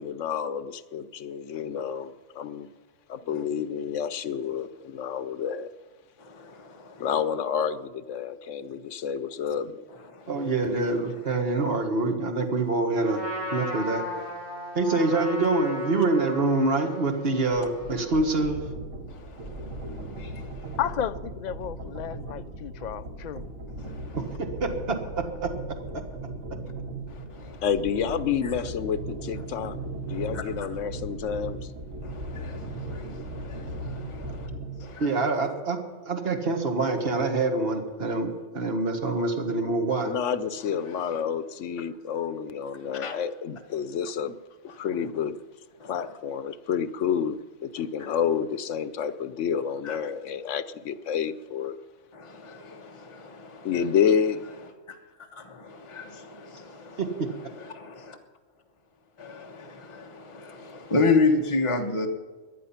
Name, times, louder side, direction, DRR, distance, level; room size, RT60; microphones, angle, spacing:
voice 1, 0.0-2.7 3.1-5.7 7.0-9.8 27.6-29.8 30.1-31.7 40.0-44.4 44.8-45.4 45.9-51.8 53.6-54.4, left 7 dB, 80° left, 1.1 m, -29 dB
voice 2, 6.2-7.1 10.1-10.3 19.1-20.8 23.8-24.2 27.1-27.6 30.1-30.4 32.0-34.5 34.8-35.2 42.9-43.2 45.8-45.9 49.8-50.0 52.1-53.7 55.3-57.0 57.3-58.2 59.2-62.1, left 3 dB, 25° left, 1.2 m, -31 dB
voice 3, 10.3-13.2 13.5-14.0 14.8-18.6 24.4-25.5 25.9-26.0 35.0-35.8 36.1-40.1 57.0-57.3, right 3 dB, 55° right, 1.8 m, -26 dB
Trumpet, 13.0-18.3, left 2 dB, 20° right, 6.4 m, -36 dB
sound 1, 17.7-34.9, right 2 dB, 85° right, 1.6 m, -37 dB
voice 4, 20.8-23.4, left 10 dB, 55° left, 0.4 m, -32 dB
18.5 x 11.0 x 5.8 m
omnidirectional pair, 1.3 m